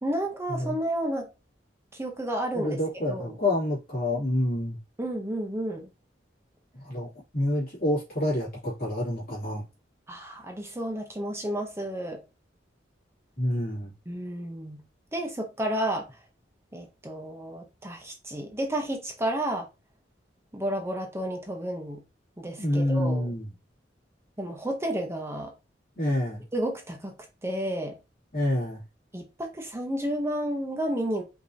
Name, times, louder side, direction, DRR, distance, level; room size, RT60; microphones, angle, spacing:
voice 1, 0.0-1.3 1.9-2.8 3.1-3.4 5.0-5.9 10.1-12.2 14.1-14.8 15.1-16.1 16.7-19.7 20.5-22.0 22.4-23.3 24.4-25.5 26.5-27.1 27.4-28.0 29.1-31.2, right 1 dB, 15° right, 0.8 m, -31 dB
voice 2, 2.5-4.8 6.7-9.6 13.4-13.9 22.6-23.5 26.0-26.4 28.3-28.8, left 1 dB, 55° left, 2.6 m, -28 dB
5.2 x 2.9 x 2.7 m
head